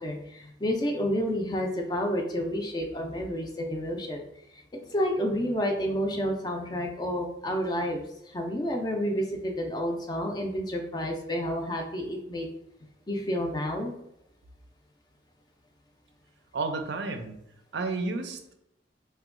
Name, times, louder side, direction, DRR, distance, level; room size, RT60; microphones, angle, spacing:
voice 1, 0.0-4.3 4.5-4.6 4.9-12.5 13.1-14.0, equal, 20° left, 2 dB, 0.4 m, -30 dB
voice 2, 16.5-17.4 17.7-18.5, right 3 dB, 65° right, 6 dB, 0.4 m, -31 dB
2.9 x 2.2 x 3.6 m, 0.80 s
head